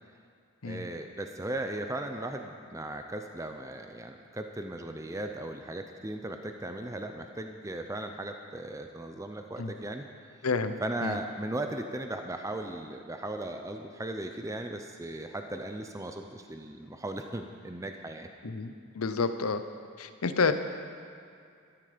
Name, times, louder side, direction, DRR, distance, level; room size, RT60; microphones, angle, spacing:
voice 1, 0.6-10.0 10.8-18.3, right 1 dB, 15° right, 5 dB, 0.6 m, -37 dB
voice 2, 10.4-10.7 11.0-11.2 18.4-19.6 20.0-20.5, left 4 dB, 90° left, 10 dB, 0.8 m, -29 dB
13.5 x 12.5 x 5.1 m, 2.4 s
head